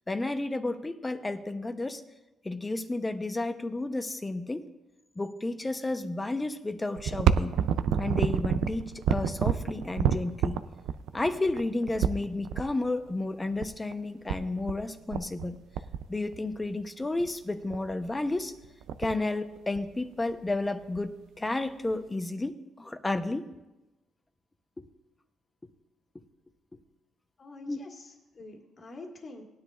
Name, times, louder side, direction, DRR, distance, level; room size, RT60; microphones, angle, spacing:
voice 1, 0.1-2.0 2.4-4.7 5.2-7.5 8.0-10.6 11.1-15.6 16.1-18.5 19.0-23.5 24.8-24.9 27.7-27.8, left 2 dB, 20° left, 9 dB, 0.8 m, -32 dB
sound 1, 7.0-12.6 13.6-13.7 13.9-14.0 14.3-14.8 15.1-15.5 15.7-16.6 17.2-17.3 17.7-18.0 18.4-18.5 18.6-19.2 19.7-20.5 20.9-21.0 21.9-22.0, right 8 dB, 85° right, 0.4 m, -28 dB
voice 2, 27.4-29.5, left 2 dB, 40° left, 1 dB, 1.8 m, -46 dB
18.5 x 10.0 x 2.5 m, 1.0 s
cardioid pair, 90°, 0 cm